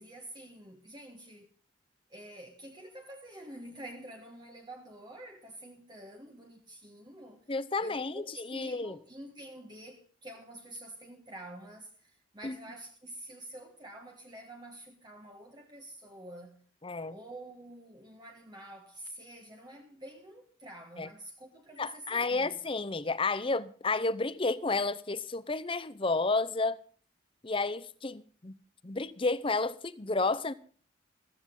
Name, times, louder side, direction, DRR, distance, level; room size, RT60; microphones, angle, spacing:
voice 1, 0.0-1.5 2.1-7.4 7.8-16.6 17.1-22.5, right 1 dB, 25° right, 1.5 m, -48 dB
voice 2, 7.5-9.0 12.4-12.6 16.8-17.2 21.0-21.1 21.8-26.8 27.4-28.5 28.8-30.5, left 3 dB, 30° left, 0.7 m, -31 dB
15.0 x 14.5 x 3.8 m
head